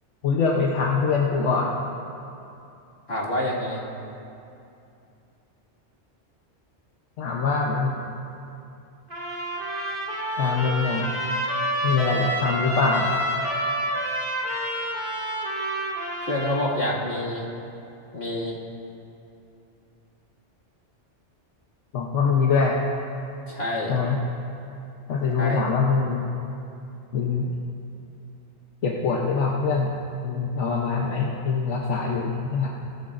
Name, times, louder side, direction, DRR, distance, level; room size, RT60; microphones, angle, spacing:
voice 1, 0.2-1.7 7.2-8.0 10.4-11.1 11.8-13.2 21.9-22.8 23.9-24.2 25.1-26.3 27.1-27.5 28.8-29.9 30.2-32.7, left 4 dB, 80° left, -2 dB, 1.2 m, -23 dB
voice 2, 3.1-3.8 16.2-17.5 18.1-18.6 23.5-23.9 25.4-25.6, left 1 dB, 60° left, -6 dB, 2.5 m, -27 dB
Trumpet, 9.1-16.7, equal, 45° right, 2.5 m, -28 dB
19.0 x 13.5 x 2.6 m, 2.7 s
omnidirectional pair, 1.2 m